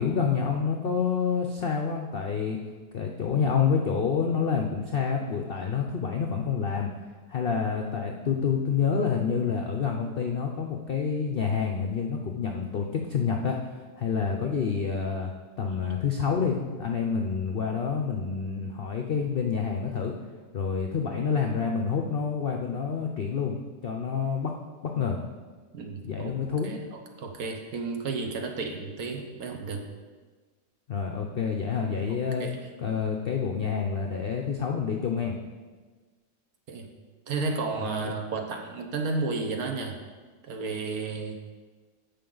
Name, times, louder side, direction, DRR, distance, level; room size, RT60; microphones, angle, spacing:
voice 1, 0.0-2.6 2.9-6.9 7.3-13.6 14.0-15.3 15.6-20.1 20.5-23.5 23.8-24.5 24.8-25.2 26.0-26.8 30.9-35.4 37.8-38.1, left 6 dB, 85° left, 2 dB, 0.5 m, -28 dB
voice 2, 25.7-26.4 26.6-29.8 32.4-32.5 36.7-36.9 37.3-40.0 40.4-41.3, right 4 dB, 60° right, 4 dB, 1.4 m, -32 dB
13.5 x 5.3 x 3.9 m, 1.4 s
omnidirectional pair, 1.8 m